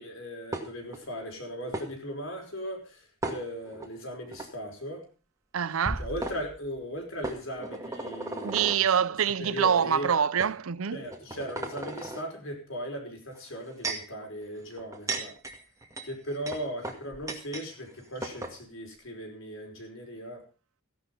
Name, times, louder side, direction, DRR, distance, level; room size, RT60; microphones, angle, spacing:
voice 1, 0.0-5.0 6.0-8.7 9.4-10.1 10.9-15.3 16.0-20.4, equal, 60° left, 5.2 m, -38 dB
sound 1, 0.5-1.0 1.7-1.9 3.2-3.9 4.3-4.5 5.8-5.9 6.2-6.4 7.2-8.8 9.6-9.8 10.4-10.5 11.1-12.2 13.3-14.1 14.8-17.7 17.9-18.0 18.2-18.6, right 2 dB, 15° right, 2.1 m, -36 dB
voice 2, 5.5-6.1 8.4-11.0, right 7 dB, 70° right, 0.6 m, -25 dB
sound 2, 5.9-7.4, equal, ahead, 0.7 m, -39 dB
15.5 x 11.0 x 5.4 m
head